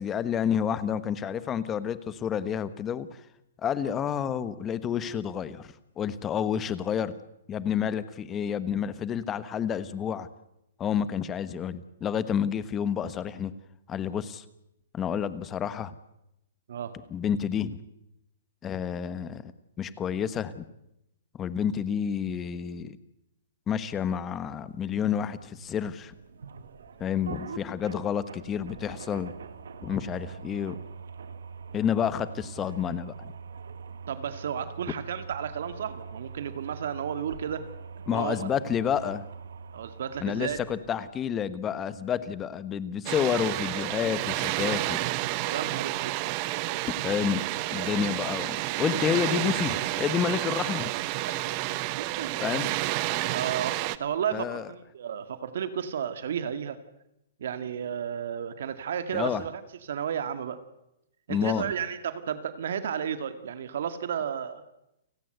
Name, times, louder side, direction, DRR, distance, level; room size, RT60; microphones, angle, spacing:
voice 1, 0.0-3.1 3.6-7.1 7.5-10.3 10.8-13.5 13.9-14.4 14.9-15.9 17.1-17.8 18.6-19.5 19.8-20.6 21.4-23.0 23.7-26.1 27.0-29.3 29.8-30.8 31.7-33.3 38.1-39.2 40.2-45.0 47.0-47.4 47.7-50.9 52.4-52.7 54.3-54.7 59.1-59.4 61.3-61.6, left 8 dB, 15° left, 14 dB, 1.2 m, -29 dB
sound 1, 24.7-41.1, right 5 dB, 85° right, 2.1 m, -43 dB
voice 2, 34.1-37.7 38.1-38.5 39.7-40.6 45.5-46.3 51.2-51.3 52.0-52.3 53.3-56.8 57.4-60.6 61.3-64.6, right 8 dB, 65° right, 10 dB, 2.0 m, -33 dB
Water, 43.1-54.0, right 17 dB, 30° right, 0.9 m, -30 dB
30.0 x 18.0 x 8.0 m, 0.86 s
hypercardioid pair, 165°, 0 cm